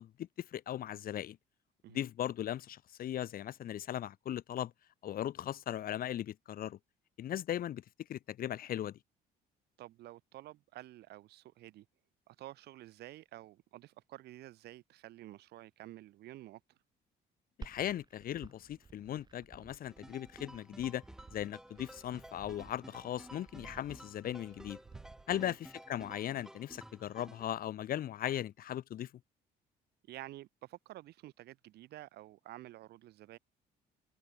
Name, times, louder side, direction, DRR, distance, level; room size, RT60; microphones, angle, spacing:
voice 1, 0.0-1.4 1.9-4.7 5.0-6.8 7.2-7.8 8.1-9.0 17.6-21.0 21.3-24.8 25.3-29.1, left 11 dB, 60° left, 2.4 m, -38 dB
voice 2, 9.8-11.8 12.3-16.6 25.3-25.6 30.1-33.4, right 15 dB, 75° right, 3.0 m, -50 dB
Glass, 17.6-25.6, right 4 dB, 25° right, 5.4 m, -55 dB
sound 1, 19.9-27.5, right 1 dB, 5° right, 2.4 m, -54 dB
cardioid pair, 110°, 17 cm